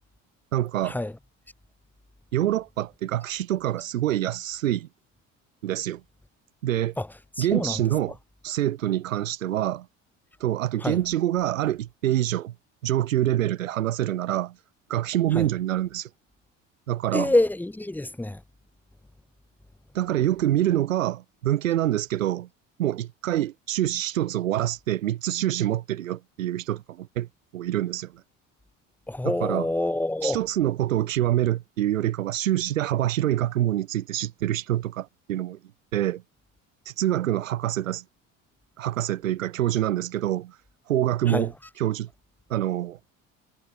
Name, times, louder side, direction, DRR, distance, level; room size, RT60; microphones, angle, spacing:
voice 1, 0.5-1.0 2.3-4.9 5.6-6.0 6.6-6.9 7.4-8.2 8.4-9.9 10.4-12.5 12.8-14.5 14.9-16.1 16.9-17.3 19.9-22.5 22.8-28.1 29.2-29.7 30.2-35.6 35.9-36.2 36.9-38.0 38.8-40.6 40.9-41.5 41.8-42.1 42.5-43.0, right 13 dB, 85° right, 3.6 m, -26 dB
voice 2, 7.4-7.8 10.8-11.0 15.3-15.5 17.1-18.4 29.1-30.4 41.3-41.5, left 1 dB, 5° left, 1.0 m, -26 dB
hypercardioid pair, 65°, 39 cm